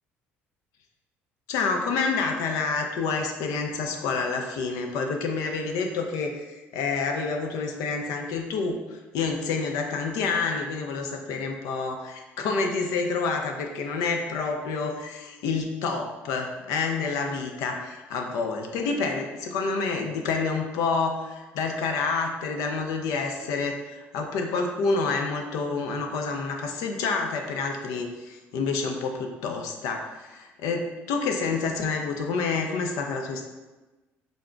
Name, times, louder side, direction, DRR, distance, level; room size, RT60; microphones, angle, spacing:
voice 1, 1.5-33.4, left 4 dB, 70° left, 3 dB, 0.4 m, -28 dB
3.8 x 3.6 x 2.2 m, 1.2 s
hypercardioid pair, 60°, 6 cm